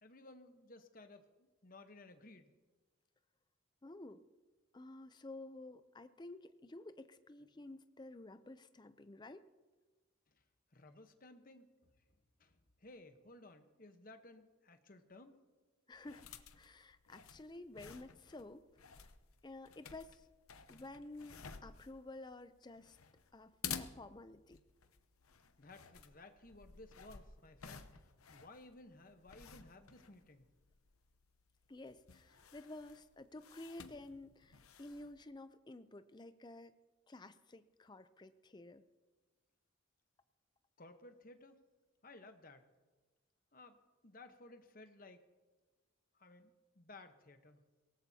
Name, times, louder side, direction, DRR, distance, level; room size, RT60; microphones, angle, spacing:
voice 1, 0.0-2.5 10.7-11.7 12.4-15.3 25.6-28.0 28.3-30.4 40.8-41.6 42.0-42.6 43.5-43.8 44.0-45.3 46.1-47.6, left 2 dB, 40° left, 7 dB, 1.0 m, -57 dB
voice 2, 3.8-4.2 4.7-9.5 15.9-16.3 16.6-19.1 19.4-20.3 20.7-23.0 23.3-24.6 31.7-36.7 37.1-38.8, left 2 dB, 20° left, 12 dB, 0.5 m, -52 dB
sound 1, 15.9-35.2, left 7 dB, 90° left, 0.8 m, -53 dB
23.5 x 18.0 x 2.8 m, 1.3 s
head